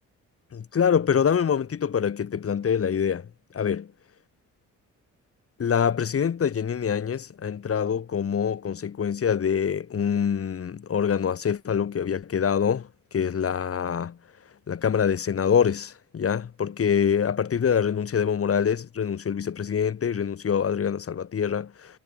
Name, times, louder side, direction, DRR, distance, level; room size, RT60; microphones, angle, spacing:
voice 1, 0.5-3.3 3.5-3.8 5.6-12.9 13.1-14.2 14.7-21.7, left 7 dB, 50° left, 4.4 m, -25 dB
cardioid pair, 90°, 30 cm